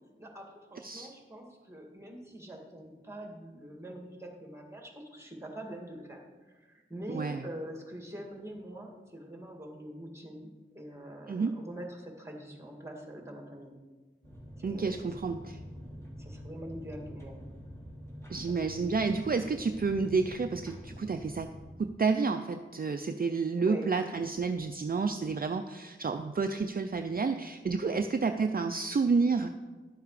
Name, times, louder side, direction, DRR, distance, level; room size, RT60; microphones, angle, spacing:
voice 1, 0.2-13.7 14.6-15.1 16.2-17.4 18.5-18.9 23.6-23.8 27.8-28.0, right 1 dB, 15° right, 1 dB, 2.0 m, -44 dB
voice 2, 7.1-7.4 11.3-11.5 14.6-15.5 18.3-21.5 21.8-29.6, right 4 dB, 45° right, 7 dB, 0.4 m, -30 dB
sound 1, 14.2-21.7, equal, 15° left, 2.0 m, -46 dB
11.0 x 6.8 x 4.9 m, 1.3 s
wide cardioid pair, 55°, 21 cm